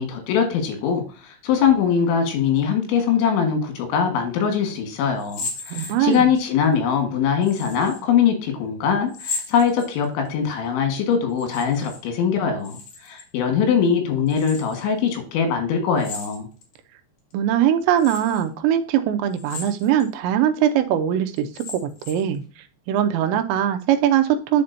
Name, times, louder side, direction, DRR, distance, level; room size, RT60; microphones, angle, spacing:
voice 1, 0.0-16.5, left 7 dB, 80° left, 5 dB, 4.0 m, -22 dB
sound 1, 5.2-6.4 7.4-8.0 9.1-10.3 11.3-12.0 12.3-13.3 14.3-14.8 16.0-16.7 17.3-17.4 18.0-18.4 19.3-20.1 20.6-20.7 21.4-22.3, left 4 dB, 55° left, 2.5 m, -35 dB
voice 2, 5.7-6.3 17.3-22.4 22.9-24.6, right 10 dB, 85° right, 7 dB, 2.9 m, -21 dB
11.0 x 4.3 x 2.6 m, 0.37 s
omnidirectional pair, 5.2 m